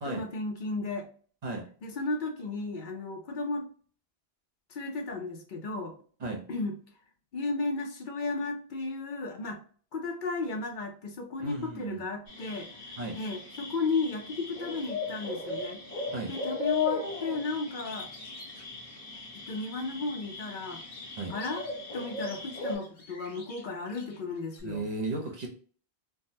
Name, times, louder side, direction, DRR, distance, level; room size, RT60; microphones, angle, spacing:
voice 1, 0.0-1.1 1.8-3.7 4.7-6.0 6.5-6.8 7.3-9.6 9.9-12.7 13.2-15.8 16.3-18.1 19.3-20.8 21.3-21.6 21.9-24.8, left 3 dB, 55° left, 4 dB, 0.7 m, -34 dB
voice 2, 11.4-12.0 13.0-13.2 16.1-16.3 21.2-21.3 24.6-25.5, right 2 dB, 45° right, 1 dB, 0.7 m, -35 dB
sound 1, 12.3-22.7, left 3 dB, 40° left, 1.1 m, -37 dB
Bird, 17.7-19.7 20.1-24.6, left 3 dB, 85° left, 1.3 m, -50 dB
3.4 x 2.1 x 2.7 m, 0.44 s
omnidirectional pair, 1.1 m